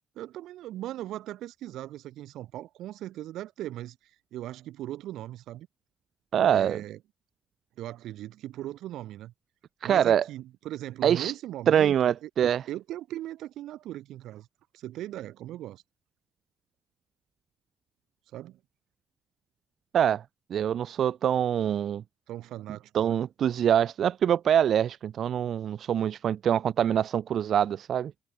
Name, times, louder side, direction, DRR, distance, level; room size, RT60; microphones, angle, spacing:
voice 1, 0.1-4.0 4.3-5.7 6.4-7.0 7.8-9.3 9.8-12.3 12.7-14.5 14.7-15.8 18.3-18.6 22.3-23.2, right 14 dB, 85° right, 5.0 m, -39 dB
voice 2, 6.3-6.8 9.8-10.2 11.0-11.3 11.7-12.6 19.9-20.2 20.5-22.0 22.9-28.1, right 9 dB, 65° right, 1.5 m, -24 dB
cardioid pair, 90°, 0 cm